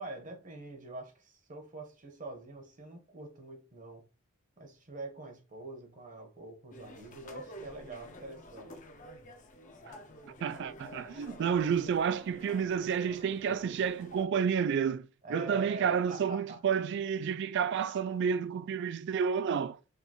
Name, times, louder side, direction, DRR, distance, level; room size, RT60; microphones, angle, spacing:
voice 1, 0.0-4.1 4.6-8.8 15.2-16.6, right 2 dB, 40° right, 1.0 m, -45 dB
sound 1, 6.7-14.2, equal, 35° left, 0.7 m, -49 dB
voice 2, 10.4-19.8, right 7 dB, 55° right, 0.3 m, -30 dB
5.0 x 2.6 x 2.9 m
head